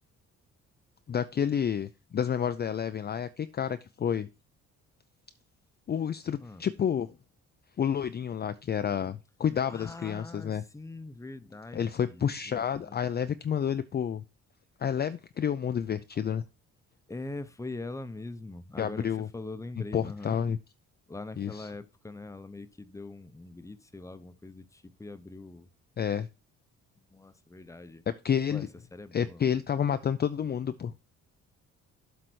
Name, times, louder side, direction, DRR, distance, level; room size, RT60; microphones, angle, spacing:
voice 1, 1.1-4.3 5.9-7.1 7.8-10.6 11.7-14.2 14.8-16.4 18.8-19.3 19.9-20.6 21.4-21.7 26.0-26.3 28.2-28.7 29.1-30.9, left 8 dB, 35° left, 0.5 m, -30 dB
voice 2, 9.7-13.4 17.1-19.1 19.3-20.4 21.1-25.7 27.1-28.0 28.5-28.7 28.9-29.5, left 2 dB, 10° left, 0.8 m, -43 dB
7.8 x 4.0 x 6.2 m
cardioid pair, 90°, 30 cm